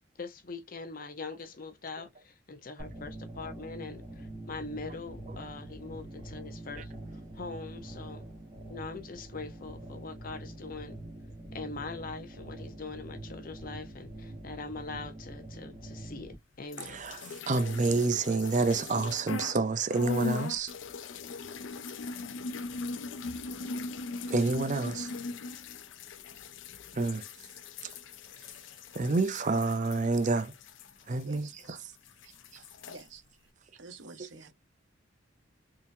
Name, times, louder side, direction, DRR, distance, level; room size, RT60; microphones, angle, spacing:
voice 1, 0.1-8.3 8.7-11.0 11.5-17.0, left 3 dB, 45° left, 0.7 m, -42 dB
sound 1, 2.8-16.4, right 1 dB, 20° right, 1.3 m, -44 dB
sound 2, 16.7-19.6 19.9-31.8 32.1-33.0, left 4 dB, 80° left, 0.5 m, -39 dB
voice 2, 17.5-20.7 24.3-25.1 26.9-27.2 28.9-30.5 31.1-31.5, right 3 dB, 40° right, 0.5 m, -28 dB
voice 3, 32.9-33.2 33.8-34.5, right 4 dB, 75° right, 0.9 m, -49 dB
3.8 x 2.7 x 2.6 m
head